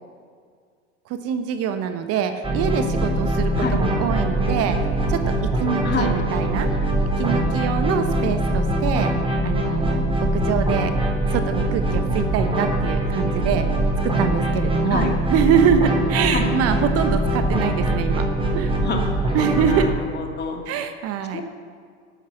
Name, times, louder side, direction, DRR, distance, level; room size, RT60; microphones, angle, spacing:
voice 1, 1.1-5.3 5.6-6.7 7.2-9.1 9.4-10.0 10.3-10.9 11.3-13.7 14.0-18.3 18.5-18.7 19.3-19.9 20.7-21.4, right 8 dB, 40° right, 8 dB, 1.1 m, -24 dB
sound 1, 2.4-19.9, right 1 dB, 15° right, 4.3 m, -22 dB
voice 2, 18.8-19.4 19.6-20.6 21.3-21.4, left 3 dB, 30° left, 2 dB, 2.3 m, -27 dB
12.0 x 9.2 x 7.1 m, 2.1 s
figure-of-eight pair, 80°, 36 cm